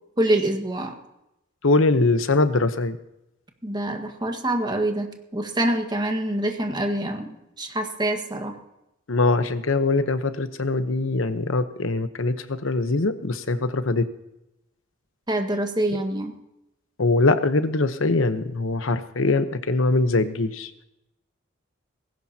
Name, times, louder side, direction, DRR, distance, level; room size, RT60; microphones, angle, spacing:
voice 1, 0.2-0.9 3.6-8.5 15.3-16.3, right 1 dB, 20° right, 4 dB, 1.6 m, -25 dB
voice 2, 1.6-3.0 9.1-14.0 17.0-20.7, left 3 dB, 70° left, 10 dB, 1.0 m, -22 dB
19.5 x 17.0 x 2.9 m, 0.88 s
head